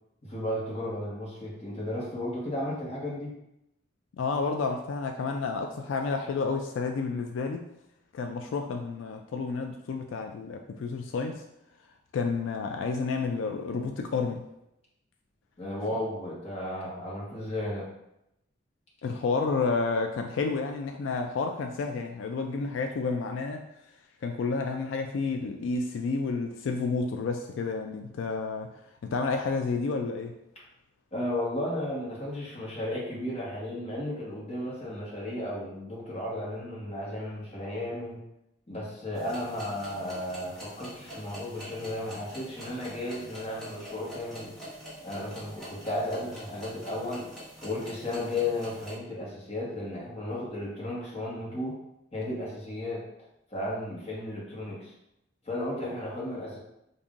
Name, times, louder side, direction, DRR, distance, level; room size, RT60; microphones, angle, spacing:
voice 1, 0.2-3.3 15.6-17.9 31.1-38.2 38.7-44.5 45.0-47.3 47.6-51.8 52.1-53.0 53.5-54.9 55.4-56.6, left 1 dB, 35° left, -5 dB, 1.2 m, -34 dB
voice 2, 4.2-7.6 8.1-11.4 12.1-14.4 19.0-23.6 24.2-30.3, left 4 dB, 85° left, 4 dB, 0.3 m, -30 dB
sound 1, 39.1-49.0, equal, ahead, 1.3 m, -45 dB
5.3 x 2.6 x 2.4 m, 0.84 s
head